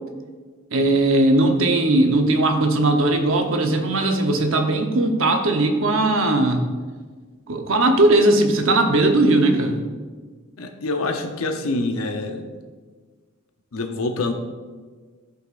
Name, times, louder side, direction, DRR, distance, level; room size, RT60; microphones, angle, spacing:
voice 1, 0.7-6.7 7.5-9.8, right 2 dB, 65° right, 4 dB, 0.9 m, -18 dB
voice 2, 10.6-12.5 13.7-14.3, left 2 dB, 85° left, 5 dB, 0.8 m, -26 dB
13.0 x 5.6 x 2.5 m, 1.5 s
head